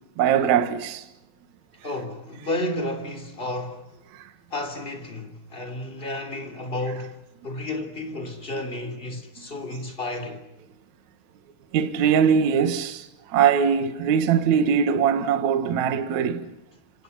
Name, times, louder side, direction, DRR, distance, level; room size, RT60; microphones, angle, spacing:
voice 1, 0.2-1.1 4.1-4.3 8.5-8.6 9.4-9.5 11.7-16.5, right 7 dB, 60° right, 2.2 m, -22 dB
voice 2, 1.8-3.9 4.5-10.4, left 1 dB, 15° left, 2.5 m, -32 dB
28.5 x 26.0 x 5.6 m
omnidirectional pair, 5.2 m